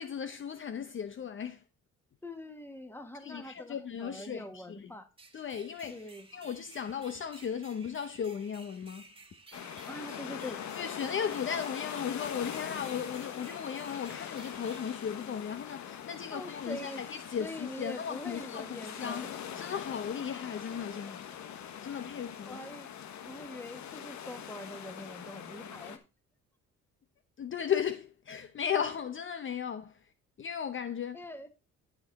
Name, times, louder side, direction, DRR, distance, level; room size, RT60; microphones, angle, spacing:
voice 1, 0.0-1.6 3.2-4.9 5.3-9.1 10.8-19.3 19.6-21.3 21.8-22.6 27.4-30.1 30.4-31.2, left 8 dB, 40° left, 0.7 m, -36 dB
voice 2, 2.2-5.1 5.9-6.3 9.9-10.6 16.3-17.0 17.4-19.3 22.4-22.9 23.2-26.0 31.1-31.5, left 1 dB, 5° left, 1.7 m, -44 dB
sound 1, 5.2-15.9, right 3 dB, 20° right, 1.8 m, -55 dB
sound 2, 9.5-26.0, left 9 dB, 70° left, 1.3 m, -42 dB
11.5 x 5.2 x 4.1 m
cardioid pair, 90°, 30 cm